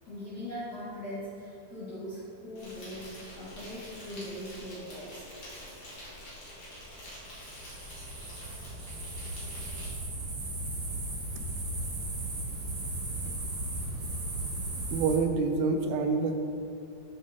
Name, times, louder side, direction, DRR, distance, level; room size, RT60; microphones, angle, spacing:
voice 1, 0.0-5.2, equal, 75° left, -11 dB, 0.9 m, -40 dB
Insect, 2.6-9.9, equal, 45° left, 1.8 m, -47 dB
sound 1, 7.3-15.2, right 2 dB, 55° right, 1.1 m, -36 dB
voice 2, 14.9-16.4, right 4 dB, 80° right, 5 dB, 1.8 m, -27 dB
7.2 x 6.3 x 2.5 m, 2.5 s
omnidirectional pair, 3.8 m